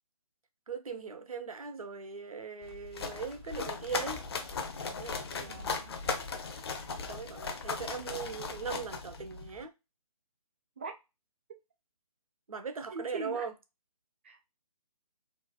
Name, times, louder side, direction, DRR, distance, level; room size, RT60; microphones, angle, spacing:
voice 1, 0.7-4.2 4.9-5.8 7.1-9.7 12.5-13.5, right 5 dB, 65° right, 0.6 m, -39 dB
sound 1, 2.6-9.6, left 4 dB, 40° left, 0.5 m, -38 dB
voice 2, 5.3-6.1 10.8-10.9 12.9-13.5 14.2-14.5, right 4 dB, 20° right, 0.3 m, -42 dB
3.8 x 2.1 x 2.4 m
figure-of-eight pair, 140°, 19 cm